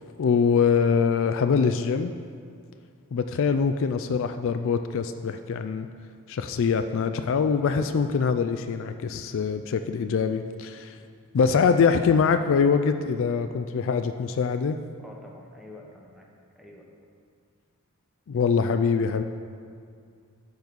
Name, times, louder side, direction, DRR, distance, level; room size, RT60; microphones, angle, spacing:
voice 1, 0.2-2.1 3.1-5.9 6.3-11.0 11.3-14.8 18.3-19.2, left 5 dB, 60° left, 8 dB, 0.4 m, -23 dB
voice 2, 15.0-16.3 16.6-16.9, left 1 dB, ahead, -2 dB, 1.0 m, -47 dB
10.5 x 4.0 x 6.9 m, 2.2 s
head